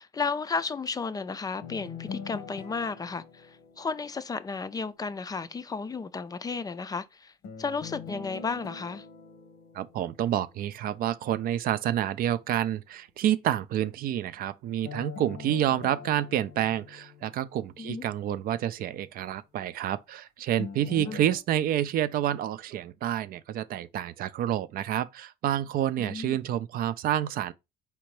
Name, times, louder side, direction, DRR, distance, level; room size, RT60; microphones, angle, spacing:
voice 1, 0.0-7.3 7.6-9.0 17.8-18.1 20.9-21.2 26.0-26.4, left 4 dB, 20° left, 0.3 m, -33 dB
sound 1, 1.6-4.7 7.4-10.7 14.8-17.9 20.6-21.4, left 6 dB, 85° left, 0.9 m, -43 dB
voice 2, 9.7-27.5, right 11 dB, 60° right, 0.4 m, -28 dB
4.3 x 3.8 x 3.1 m
cardioid pair, 110°, 17 cm